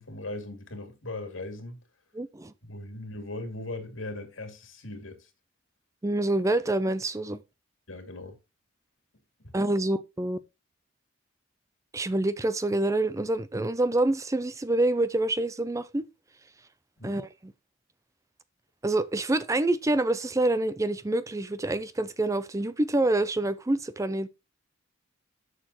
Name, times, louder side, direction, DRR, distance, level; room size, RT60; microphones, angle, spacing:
voice 1, 0.0-1.8 2.6-5.3 7.9-8.4 9.4-9.5 17.0-17.2, left 2 dB, 70° left, 2.6 m, -39 dB
voice 2, 2.1-2.5 6.0-7.4 9.5-10.4 11.9-16.1 17.0-17.5 18.8-24.3, right 2 dB, 15° right, 0.4 m, -27 dB
11.5 x 6.6 x 3.0 m
head